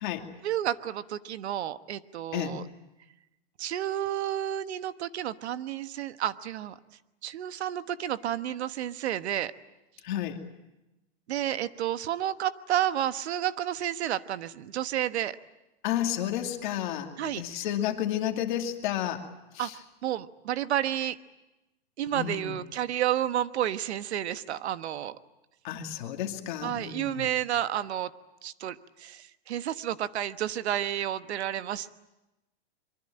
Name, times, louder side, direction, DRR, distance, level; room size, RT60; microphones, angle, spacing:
voice 1, 0.4-2.6 3.6-6.7 7.2-9.5 11.3-15.4 17.2-17.7 19.6-21.2 22.0-25.2 26.6-28.1 28.4-31.9, right 11 dB, 80° right, 13 dB, 1.3 m, -31 dB
voice 2, 10.0-10.4 15.8-19.2 19.5-19.7 22.1-22.5 25.6-27.3, left 11 dB, 45° left, 4 dB, 2.5 m, -31 dB
25.0 x 23.5 x 8.8 m, 0.95 s
supercardioid pair, 175°, 33 cm